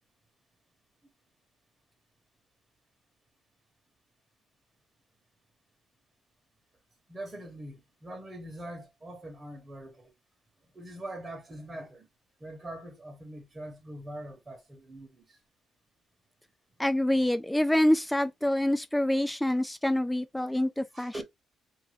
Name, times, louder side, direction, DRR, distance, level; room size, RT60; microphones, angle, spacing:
voice 1, 7.1-10.1 10.7-12.1 12.4-15.4 20.9-21.2, right 1 dB, 25° right, 1.1 m, -43 dB
voice 2, 16.8-21.1, left 1 dB, 5° left, 0.3 m, -26 dB
2.7 x 2.2 x 3.2 m
cardioid pair, 90°, 0 cm